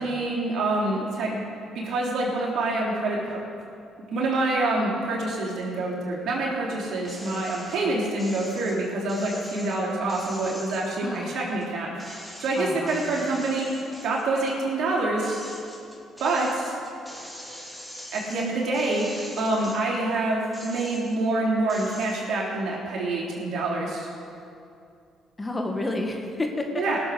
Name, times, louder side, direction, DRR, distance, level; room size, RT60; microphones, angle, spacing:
voice 1, 0.0-1.4 1.7-3.4 4.1-12.1 12.4-15.4 16.2-16.8 18.1-24.1 26.8-27.0, right 2 dB, 65° right, -3 dB, 3.4 m, -26 dB
sound 1, 7.0-7.8 8.2-11.7 12.0-14.6 15.0-20.0 20.4-21.3 21.7-22.2, equal, ahead, 3.1 m, -43 dB
voice 2, 11.0-11.5 12.6-13.0 25.4-26.8, left 2 dB, 25° left, 3 dB, 1.7 m, -30 dB
17.5 x 7.4 x 6.5 m, 2.5 s
hypercardioid pair, 60°, 0 cm